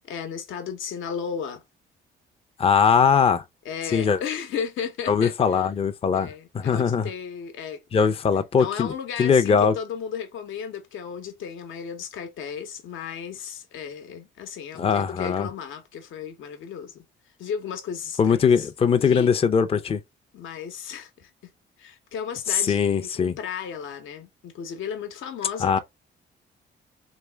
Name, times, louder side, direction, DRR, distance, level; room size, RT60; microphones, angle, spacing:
voice 1, 0.1-1.6 3.6-5.7 6.1-8.1 8.5-17.0 17.4-18.7 19.0-19.3 20.3-21.5 21.8-25.8, left 7 dB, 80° left, 0.9 m, -34 dB
voice 2, 2.6-3.4 3.9-4.2 5.1-7.1 7.9-8.9 9.2-9.7 14.8-15.5 18.2-20.0 22.5-23.3 25.6-25.8, left 6 dB, 30° left, 0.4 m, -21 dB
3.4 x 3.1 x 3.3 m
cardioid pair, 90°, 20 cm